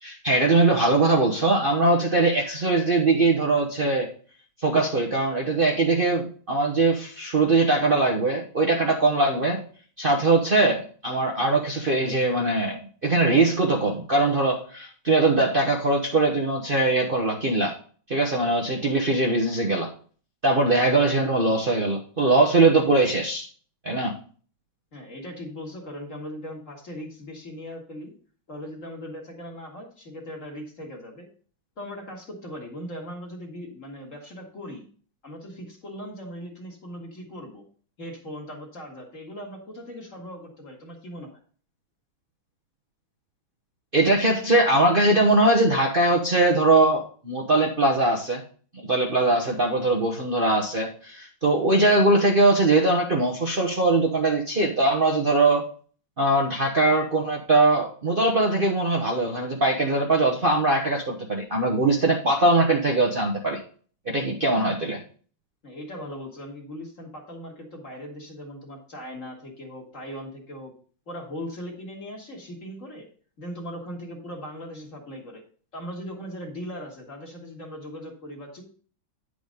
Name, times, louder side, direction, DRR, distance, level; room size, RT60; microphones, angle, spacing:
voice 1, 0.0-4.1 4.6-9.6 10.0-17.7 18.1-19.9 20.4-23.5 23.8-24.2 43.9-48.4 48.8-55.6 56.2-63.6 64.1-65.0, right 2 dB, 35° right, -2 dB, 1.0 m, -21 dB
voice 2, 24.9-28.1 28.5-31.3 31.8-34.9 35.2-37.6 38.0-41.4 65.6-70.7 71.1-73.1 73.4-75.4 75.7-78.6, equal, 40° left, 1 dB, 2.3 m, -39 dB
10.0 x 5.1 x 5.2 m, 0.43 s
omnidirectional pair, 2.2 m